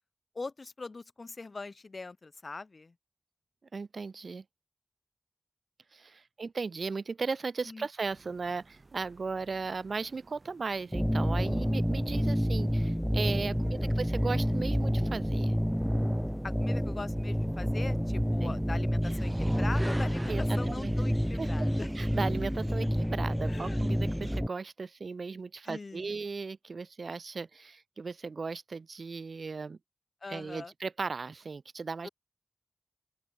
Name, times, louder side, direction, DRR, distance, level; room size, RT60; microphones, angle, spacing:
voice 1, 0.3-2.9 7.7-7.9 13.6-14.0 16.4-21.9 23.5-23.8 25.7-26.1 30.2-30.7 32.0-32.1, left 3 dB, 60° left, 2.5 m, -42 dB
voice 2, 3.7-4.4 5.9-15.6 18.4-18.6 20.3-20.9 21.3-21.7 21.9-29.8 30.3-32.1, right 4 dB, 80° right, 1.5 m, -36 dB
sound 1, 8.0-22.7, right 3 dB, 55° right, 3.2 m, -57 dB
sound 2, 10.9-24.5, equal, ahead, 0.6 m, -29 dB
sound 3, 19.0-24.4, right 1 dB, 20° right, 1.2 m, -42 dB
open air
cardioid pair, 50°, 0 cm